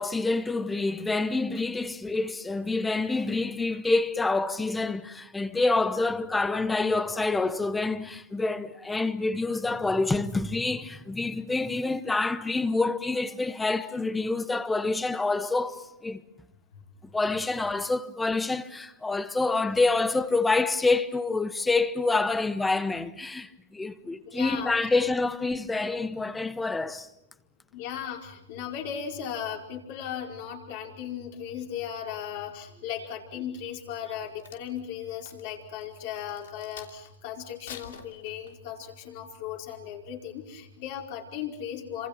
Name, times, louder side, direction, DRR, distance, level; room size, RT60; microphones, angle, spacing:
voice 1, 0.0-16.2 17.1-27.1, left 3 dB, 5° left, 1.0 m, -27 dB
voice 2, 24.2-24.7 27.7-42.1, left 9 dB, 45° left, 4.8 m, -37 dB
Crack, 34.1-37.1 37.6-38.8 39.3-39.5, left 9 dB, 65° left, 3.0 m, -47 dB
27.5 x 26.5 x 6.0 m
hypercardioid pair, 145°, 0 cm